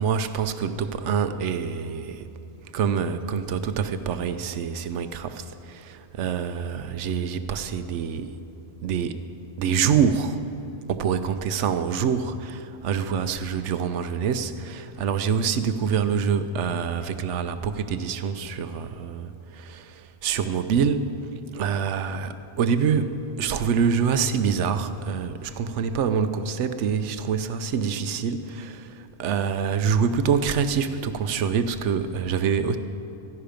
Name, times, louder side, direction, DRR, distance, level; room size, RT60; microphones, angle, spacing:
voice 1, 0.0-2.3 2.7-8.3 8.8-9.3 9.6-10.4 10.9-21.1 21.5-32.8, right 6 dB, 85° right, 10 dB, 1.0 m, -26 dB
13.5 x 10.5 x 5.1 m, 2.8 s
omnidirectional pair, 1.2 m